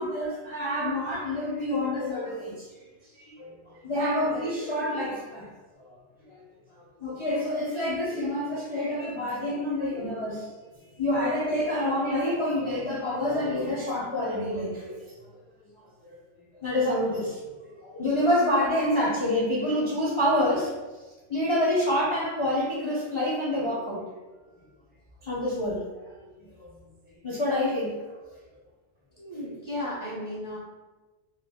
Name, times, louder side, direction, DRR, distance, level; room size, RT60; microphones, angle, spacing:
voice 1, 0.0-2.7 3.2-3.5 3.8-5.5 7.0-10.5 11.0-15.0 16.6-17.4 17.7-20.7 21.3-24.0 25.2-25.8 26.6-26.8 27.2-28.0, left 1 dB, 45° left, -7 dB, 0.4 m, -27 dB
voice 2, 29.2-30.6, left 1 dB, 35° right, -8 dB, 0.5 m, -35 dB
2.3 x 2.3 x 3.4 m, 1.2 s
omnidirectional pair, 1.2 m